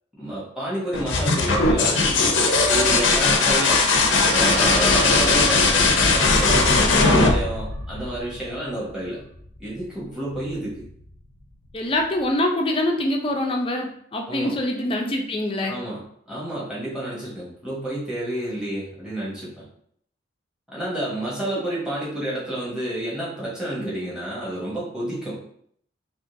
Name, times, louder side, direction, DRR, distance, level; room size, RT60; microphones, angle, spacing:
voice 1, 0.2-2.0 2.7-3.9 4.3-5.7 6.0-6.7 7.0-9.2 9.6-10.9 14.3-14.5 15.7-19.5 20.7-25.4, right 1 dB, 5° right, -7 dB, 1.1 m, -30 dB
sound 1, 0.9-8.5 10.3-10.9, left 3 dB, 80° left, 0.6 m, -19 dB
Singing, 2.5-7.8, right 3 dB, 90° right, 0.8 m, -30 dB
voice 2, 11.7-15.8, left 1 dB, 30° left, 2 dB, 0.5 m, -24 dB
3.7 x 2.9 x 2.6 m, 0.66 s
head